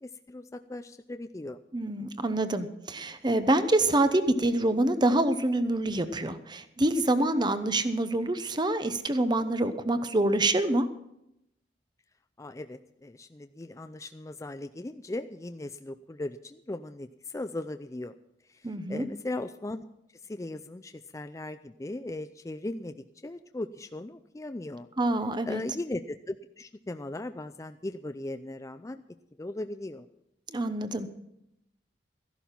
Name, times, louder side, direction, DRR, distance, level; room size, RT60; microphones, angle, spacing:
voice 1, 0.0-1.6 12.4-18.1 18.5-19.8 20.2-23.0 23.2-24.9 25.5-29.0 29.4-30.1, left 2 dB, 15° left, 9 dB, 0.4 m, -38 dB
voice 2, 1.7-10.9 18.6-19.0 25.0-25.6 30.5-31.1, right 1 dB, 25° right, 11 dB, 0.9 m, -26 dB
14.0 x 11.5 x 5.8 m, 0.81 s
head